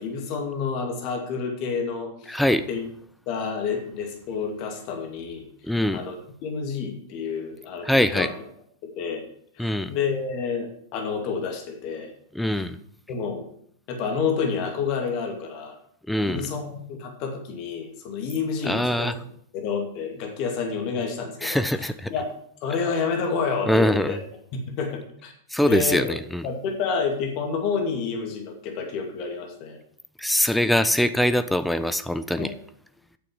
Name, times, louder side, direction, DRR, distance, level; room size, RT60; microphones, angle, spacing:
voice 1, 0.0-2.4 2.7-2.9 3.3-5.5 5.9-6.1 6.4-8.3 8.8-9.3 9.6-12.1 12.6-12.7 13.1-13.5 13.9-15.8 16.2-19.1 19.5-22.3 22.6-24.2 24.5-25.3 25.6-26.1 26.4-29.8 32.4-32.5, left 5 dB, 45° left, 3 dB, 2.4 m, -29 dB
voice 2, 2.3-2.7 5.6-6.0 7.8-8.3 9.6-9.9 12.3-12.8 16.1-16.5 18.7-19.1 21.4-22.1 23.7-24.2 25.5-26.4 30.2-32.5, left 1 dB, 5° left, 11 dB, 0.6 m, -23 dB
9.2 x 6.9 x 7.4 m, 0.66 s
figure-of-eight pair, 95°, 0 cm